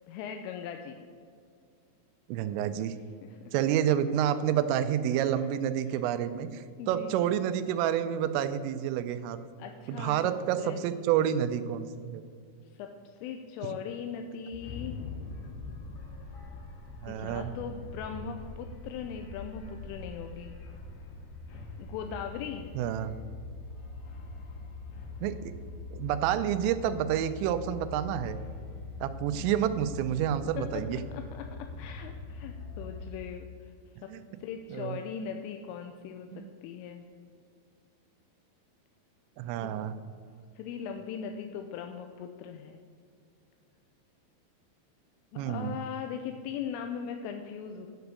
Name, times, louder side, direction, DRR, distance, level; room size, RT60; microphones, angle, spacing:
voice 1, 0.1-1.0 3.2-3.5 5.9-6.1 6.8-7.1 9.6-10.2 10.6-10.8 12.7-15.0 17.1-20.6 21.5-22.7 29.3-29.6 30.6-33.7 34.4-37.0 39.6-39.8 40.6-42.8 45.3-47.9, left 7 dB, 85° left, 5 dB, 3.1 m, -40 dB
voice 2, 2.3-2.9 3.5-9.4 9.9-12.2 13.7-13.8 17.0-17.5 22.8-23.2 25.2-25.5 25.9-28.4 29.0-31.0 34.1-34.2 34.7-35.0 36.3-36.5 39.4-40.0 45.4-45.8, right 10 dB, 85° right, 11 dB, 3.2 m, -29 dB
sound 1, 14.5-33.1, left 3 dB, 70° left, 1.8 m, -42 dB
9.4 x 7.0 x 8.0 m, 2.3 s
omnidirectional pair, 5.7 m